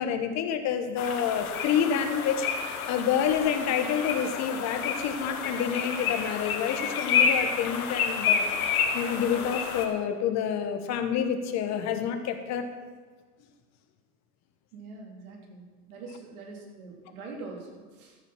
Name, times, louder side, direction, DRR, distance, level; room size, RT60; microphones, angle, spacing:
voice 1, 0.0-8.5 8.9-12.7, left 8 dB, 35° left, 8 dB, 1.3 m, -28 dB
sound 1, 1.0-9.9, left 6 dB, 70° left, 1.6 m, -29 dB
voice 2, 14.7-18.2, right 3 dB, 70° right, 1 dB, 3.0 m, -43 dB
13.0 x 6.8 x 5.8 m, 1.4 s
hypercardioid pair, 115°, 45 cm